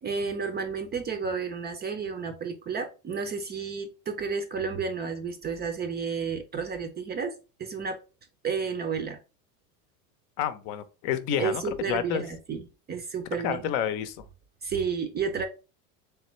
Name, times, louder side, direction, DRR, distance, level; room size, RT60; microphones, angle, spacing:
voice 1, 0.0-7.3 7.6-8.0 8.4-9.2 11.4-13.7 14.6-15.4, right 5 dB, 20° right, 0.4 m, -31 dB
voice 2, 10.4-12.2 13.4-14.2, left 9 dB, 60° left, 0.7 m, -29 dB
3.5 x 3.3 x 3.0 m
supercardioid pair, 105°, 47 cm